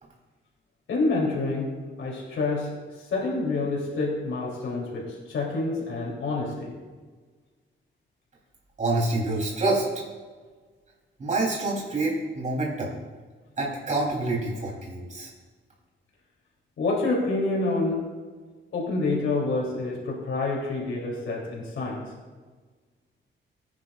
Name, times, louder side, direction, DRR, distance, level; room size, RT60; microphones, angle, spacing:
voice 1, 0.9-1.7 2.0-2.7 3.1-6.7 16.8-18.1 18.7-22.0, left 3 dB, 75° left, -2 dB, 3.3 m, -27 dB
voice 2, 8.8-9.8 11.2-13.0 13.6-15.3, right 2 dB, 40° right, -3 dB, 3.6 m, -27 dB
19.5 x 10.0 x 2.5 m, 1.4 s
wide cardioid pair, 155°, 20 cm